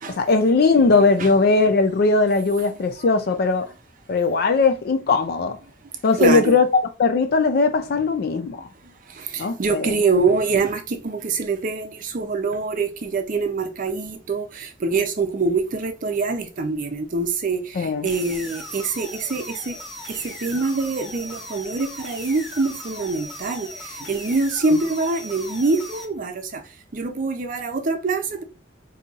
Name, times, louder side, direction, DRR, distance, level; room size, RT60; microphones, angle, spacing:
voice 1, 0.2-3.6 4.1-5.6 6.0-8.7 9.4-9.9 17.8-18.1, left 4 dB, 55° left, 0.4 m, -19 dB
voice 2, 6.2-6.6 9.1-19.8 20.1-26.6 26.9-28.4, right 3 dB, 45° right, 0.5 m, -24 dB
sound 1, 18.0-26.0, equal, ahead, 1.9 m, -38 dB
5.3 x 2.8 x 2.4 m
head